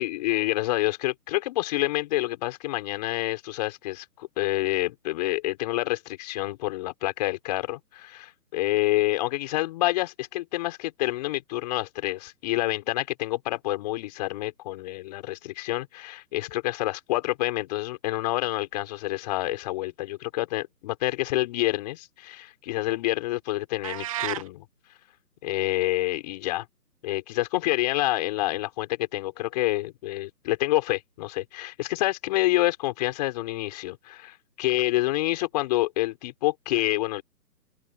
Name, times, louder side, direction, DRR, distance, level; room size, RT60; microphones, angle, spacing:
voice 1, 0.0-24.6 25.4-26.7 27.0-37.2, left 17 dB, 25° left, 5.5 m, -28 dB
sound 1, 23.8-24.5, right 13 dB, 20° right, 1.6 m, -31 dB
open air
hypercardioid pair, 160°, 50 cm